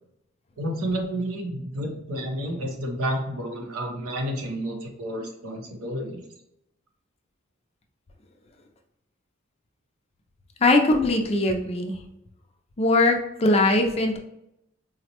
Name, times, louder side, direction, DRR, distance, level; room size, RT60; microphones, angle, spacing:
voice 1, 0.6-6.2, right 1 dB, 90° right, 2 dB, 0.8 m, -30 dB
voice 2, 10.6-12.0 12.8-14.2, left 2 dB, 30° left, 3 dB, 0.4 m, -21 dB
3.9 x 2.1 x 2.8 m, 0.83 s
head